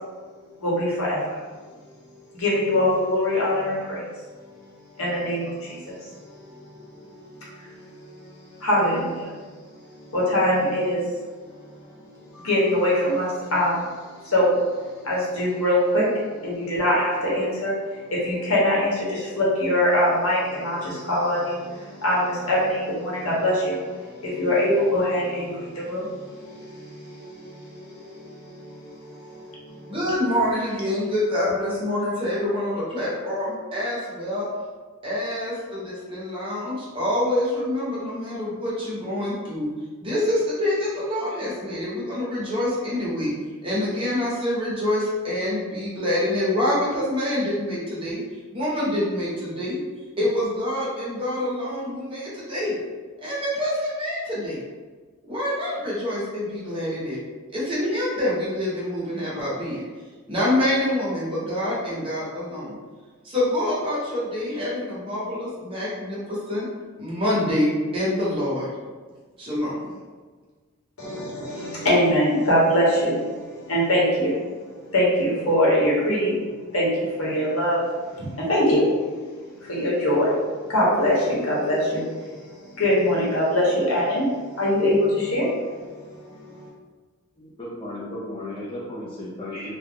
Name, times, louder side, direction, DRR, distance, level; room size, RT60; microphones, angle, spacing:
voice 1, 0.6-1.4 2.3-4.0 5.0-6.3 7.0-8.1 8.6-9.3 9.8-11.1 12.3-29.9 71.0-76.4 76.7-77.8 78.1-80.4 80.7-85.7 85.9-86.7, left 1 dB, 70° left, -6 dB, 0.9 m, -23 dB
voice 2, 29.9-34.4 35.0-39.7 40.0-43.3 43.6-48.2 48.5-49.8 50.2-52.7 53.2-54.6 55.3-57.2 57.5-59.8 60.3-62.8 63.2-66.7 67.0-67.7 67.9-68.7 69.4-69.8, left 1 dB, 25° right, -7 dB, 0.8 m, -26 dB
voice 3, 87.4-89.7, left 1 dB, 25° left, -7 dB, 0.4 m, -34 dB
2.4 x 2.1 x 3.3 m, 1.4 s
head